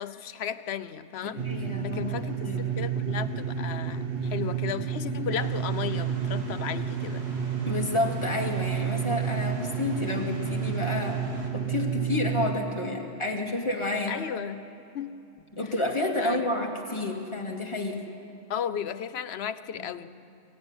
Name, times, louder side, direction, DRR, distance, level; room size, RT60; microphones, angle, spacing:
voice 1, 0.0-1.4 1.8-2.4 2.8-7.2 14.1-14.6 14.9-15.3 16.2-16.5 18.5-20.1, left 9 dB, 80° left, 13 dB, 1.0 m, -34 dB
voice 2, 1.2-2.1 2.4-2.6 5.9-6.0 7.6-11.2 11.5-14.2 15.5-18.0 19.8-19.9, left 2 dB, 30° left, 0 dB, 2.4 m, -30 dB
sound 1, 1.4-12.5, right 7 dB, 65° right, 1.3 m, -30 dB
sound 2, 5.3-11.5, right 1 dB, 90° right, 2.6 m, -48 dB
24.0 x 15.5 x 9.8 m, 2.7 s
omnidirectional pair, 1.1 m